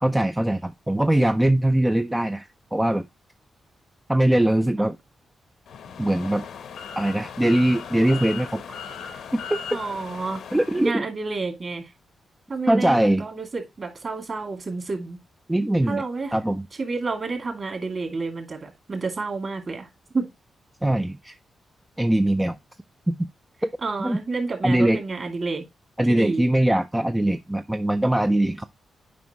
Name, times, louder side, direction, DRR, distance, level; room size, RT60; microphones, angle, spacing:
voice 1, 0.0-3.0 4.1-5.0 6.0-6.4 7.0-8.8 9.3-9.8 10.5-11.0 12.7-13.2 15.5-16.0 16.3-16.7 20.8-21.3 22.0-22.6 23.1-23.3 23.6-23.7 24.0-24.2 24.6-25.0 26.0-28.6, right 1 dB, 10° right, 0.4 m, -21 dB
sound 1, 5.7-10.9, left 7 dB, 85° left, 0.9 m, -38 dB
voice 2, 9.7-10.4 10.8-11.8 12.5-15.2 15.9-16.3 16.8-19.9 20.1-20.3 23.8-25.6 26.1-26.4, right 3 dB, 35° right, 2.5 m, -30 dB
9.3 x 5.3 x 3.0 m
wide cardioid pair, 145°, 0 cm